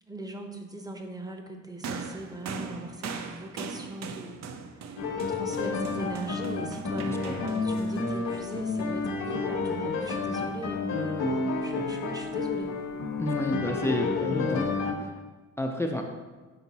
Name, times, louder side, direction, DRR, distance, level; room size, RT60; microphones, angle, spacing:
voice 1, 0.0-4.4 4.9-11.0 11.2-12.8, right 1 dB, 10° right, 4 dB, 0.8 m, -39 dB
sound 1, 1.8-9.3 10.3-10.5, right 5 dB, 65° right, 0.6 m, -41 dB
sound 2, 5.0-14.9, left 4 dB, 65° left, 1.0 m, -30 dB
voice 2, 13.2-14.7 15.0-15.1 15.6-16.0, left 1 dB, 10° left, 2 dB, 0.5 m, -30 dB
6.0 x 4.4 x 4.1 m, 1.3 s
cardioid pair, 90°, 30 cm